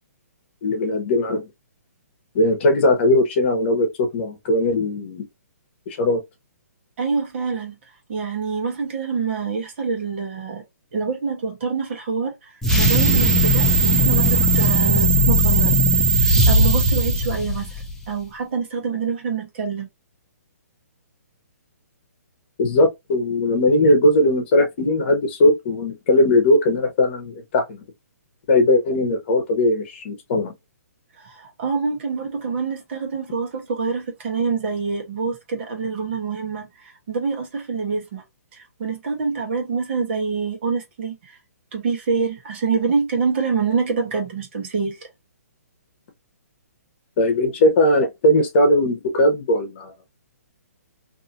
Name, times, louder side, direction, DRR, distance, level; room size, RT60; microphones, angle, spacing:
voice 1, 0.6-1.5 2.3-5.2 5.9-6.2 22.6-27.8 28.5-30.5 47.2-49.9, left 1 dB, 40° left, 1.1 m, -19 dB
voice 2, 7.0-7.8 8.1-10.6 10.9-15.8 16.2-19.9 31.2-38.2 38.5-41.4 41.7-45.1, right 5 dB, 45° right, 1.1 m, -26 dB
sound 1, 12.6-18.0, right 1 dB, 5° left, 0.7 m, -17 dB
2.7 x 2.6 x 2.6 m
hypercardioid pair, 145°, 9 cm